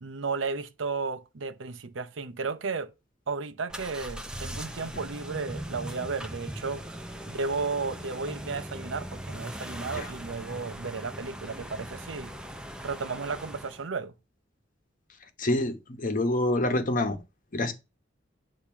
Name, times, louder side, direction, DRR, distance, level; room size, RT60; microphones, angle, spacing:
voice 1, 0.0-2.9 3.3-7.0 7.3-12.3 12.8-14.1, right 4 dB, 85° right, 0.7 m, -34 dB
sound 1, 3.7-13.9, right 1 dB, 5° right, 0.6 m, -40 dB
voice 2, 15.4-17.2 17.5-17.7, left 1 dB, 45° left, 1.1 m, -26 dB
8.7 x 2.9 x 5.9 m
head